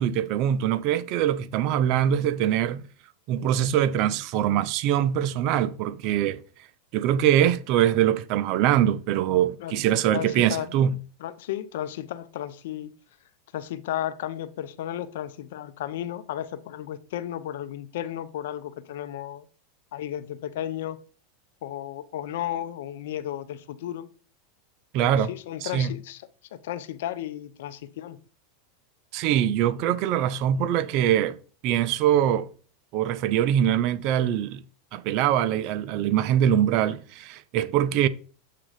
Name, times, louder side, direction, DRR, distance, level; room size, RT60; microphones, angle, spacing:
voice 1, 0.0-2.9 3.3-6.4 6.9-10.9 24.9-25.3 25.6-25.9 29.1-31.4 31.6-32.5 32.9-34.6 34.9-38.1, right 10 dB, 50° right, 0.6 m, -23 dB
voice 2, 10.1-10.7 11.2-12.9 13.5-19.5 19.9-21.0 21.6-24.1 25.0-26.2 26.5-28.2, left 11 dB, 75° left, 0.6 m, -34 dB
7.6 x 3.8 x 4.9 m
supercardioid pair, 135°, 0 cm